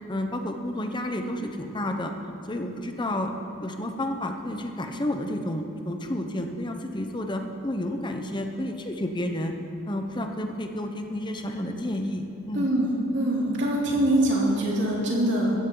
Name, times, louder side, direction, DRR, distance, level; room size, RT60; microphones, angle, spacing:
voice 1, 0.1-2.1 2.5-3.3 3.6-9.5 9.9-12.7, left 1 dB, 20° left, 4 dB, 0.9 m, -30 dB
voice 2, 12.5-15.5, right 1 dB, 60° right, -4 dB, 3.2 m, -24 dB
16.0 x 14.0 x 3.9 m, 2.6 s
head